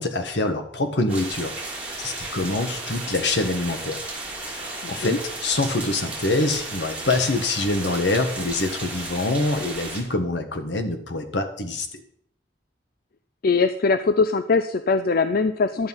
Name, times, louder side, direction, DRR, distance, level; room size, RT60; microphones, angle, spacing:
voice 1, 0.0-4.0 4.5-11.9, left 2 dB, 75° left, 7 dB, 1.5 m, -25 dB
sound 1, 1.1-10.0, right 2 dB, 10° right, 2.7 m, -34 dB
voice 2, 4.8-5.2 13.4-15.9, left 4 dB, 55° left, 11 dB, 0.5 m, -21 dB
12.0 x 8.1 x 5.6 m, 0.67 s
head